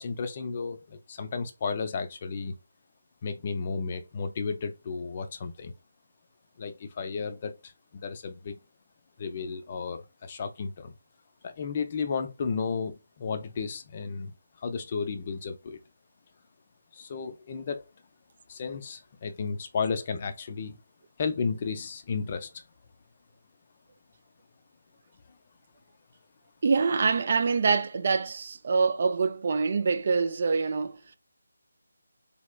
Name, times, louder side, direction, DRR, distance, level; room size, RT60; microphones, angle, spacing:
voice 1, 0.0-2.5 3.2-5.7 6.6-8.6 9.2-10.9 11.4-14.3 14.6-15.8 16.9-17.9 18.5-20.8 21.2-22.6, left 5 dB, 35° left, 0.5 m, -33 dB
voice 2, 26.6-31.2, right 4 dB, 45° right, 0.3 m, -25 dB
3.2 x 2.8 x 2.2 m
figure-of-eight pair, 160°, 0 cm